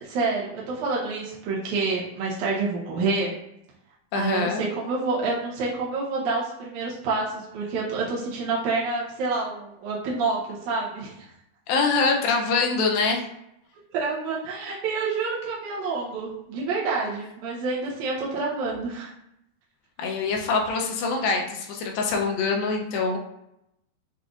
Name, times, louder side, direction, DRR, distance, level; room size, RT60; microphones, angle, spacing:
voice 1, 0.0-3.4 4.1-11.3 13.9-19.1, right 3 dB, 80° right, -6 dB, 1.8 m, -28 dB
voice 2, 4.1-4.6 11.7-13.3 20.0-23.2, left 4 dB, 80° left, 1 dB, 2.2 m, -24 dB
7.4 x 2.5 x 2.4 m, 0.81 s
omnidirectional pair, 4.5 m